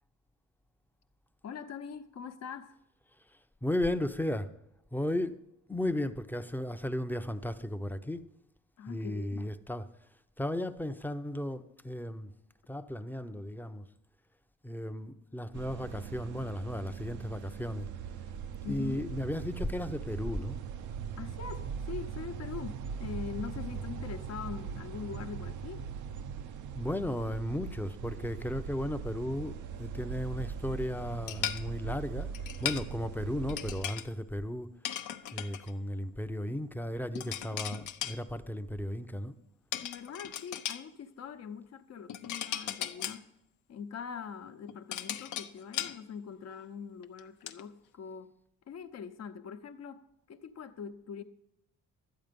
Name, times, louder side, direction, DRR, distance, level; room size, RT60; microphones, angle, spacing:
voice 1, 1.4-2.8 8.8-9.5 18.6-19.0 21.2-25.8 39.8-43.3 43.7-48.3 48.7-51.2, left 7 dB, 60° left, 0.9 m, -43 dB
voice 2, 3.6-4.5 4.9-5.4 5.7-8.3 8.9-9.8 10.4-12.3 12.7-13.9 14.6-17.9 18.6-20.6 26.7-32.3 32.6-34.7 35.3-39.3, left 1 dB, 5° left, 0.6 m, -35 dB
sound 1, 15.5-33.9, right 7 dB, 75° right, 0.7 m, -40 dB
sound 2, 31.3-31.6 32.3-32.9 33.5-34.1 34.8-35.7 37.2-38.2 39.7-40.8 42.1-43.2 44.5-46.0 46.5-46.6 47.0-47.6, left 10 dB, 85° left, 0.7 m, -37 dB
12.5 x 8.5 x 5.2 m
cardioid pair, 90°, 30 cm